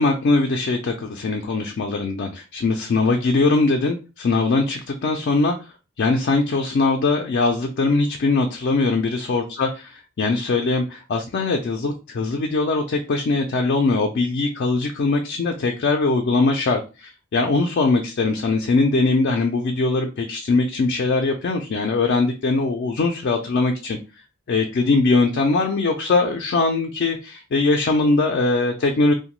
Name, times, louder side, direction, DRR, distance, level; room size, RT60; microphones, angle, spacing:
voice 1, 0.0-9.7 10.2-24.0 24.5-29.1, left 3 dB, 50° left, 3 dB, 0.4 m, -21 dB
2.8 x 2.2 x 3.0 m, 0.31 s
head